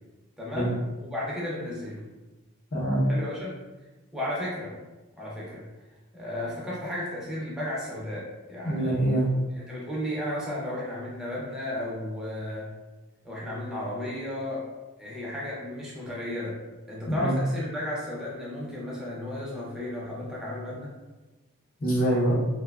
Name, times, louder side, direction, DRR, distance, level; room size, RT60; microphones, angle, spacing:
voice 1, 0.4-0.7 1.1-2.0 3.1-3.5 4.1-4.7 5.2-5.7 6.1-9.3 9.5-12.7 13.2-14.6 15.0-16.6 16.9-20.9, left 1 dB, 5° right, -6 dB, 0.5 m, -34 dB
voice 2, 2.7-3.0 8.6-9.3 17.1-17.3 21.8-22.3, right 1 dB, 40° left, -6 dB, 0.7 m, -24 dB
2.7 x 2.1 x 2.3 m, 1.1 s
head